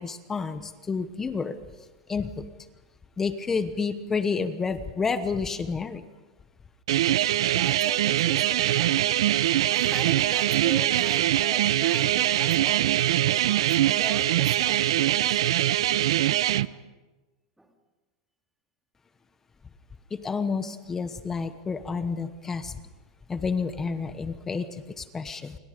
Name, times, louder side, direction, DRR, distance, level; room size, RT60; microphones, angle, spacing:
voice 1, 0.0-1.6 2.1-2.5 3.2-6.0 20.1-22.8 23.3-25.6, left 5 dB, 15° left, 11 dB, 1.0 m, -30 dB
sound 1, 6.9-16.7, right 13 dB, 75° right, 0.7 m, -23 dB
voice 2, 7.5-9.1 9.7-12.9 13.3-15.7 16.7-16.8 17.6-17.7, right 1 dB, 5° right, 4 dB, 2.2 m, -41 dB
29.0 x 23.5 x 5.2 m, 1.2 s
supercardioid pair, 155°, 3 cm